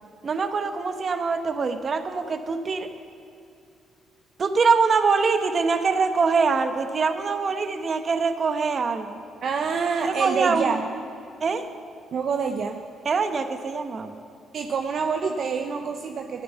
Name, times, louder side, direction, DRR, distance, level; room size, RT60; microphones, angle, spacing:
voice 1, 0.2-2.9 4.4-9.2 10.0-10.8 11.4-11.7 13.0-14.2, right 4 dB, 45° right, 8 dB, 1.0 m, -24 dB
voice 2, 9.4-10.9 12.1-12.8 14.5-16.4, right 5 dB, 60° right, 5 dB, 0.7 m, -26 dB
13.5 x 9.4 x 7.0 m, 2.5 s
cardioid pair, 90°, 0 cm